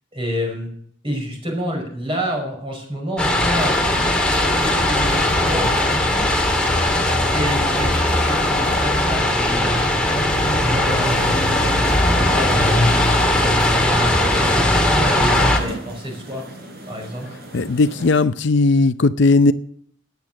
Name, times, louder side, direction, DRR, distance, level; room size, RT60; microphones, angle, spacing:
voice 1, 0.1-0.7 1.0-6.6 7.0-9.8 10.3-11.5 12.1-12.7 13.1-13.5 13.8-16.5 16.8-17.3, equal, 30° right, 5.4 m, -29 dB
sound 1, 3.2-15.6, left 1 dB, 5° left, 2.3 m, -18 dB
sound 2, 3.5-18.2, right 1 dB, 55° right, 4.2 m, -37 dB
voice 2, 17.5-19.5, left 3 dB, 65° left, 0.6 m, -16 dB
13.5 x 9.7 x 7.6 m
head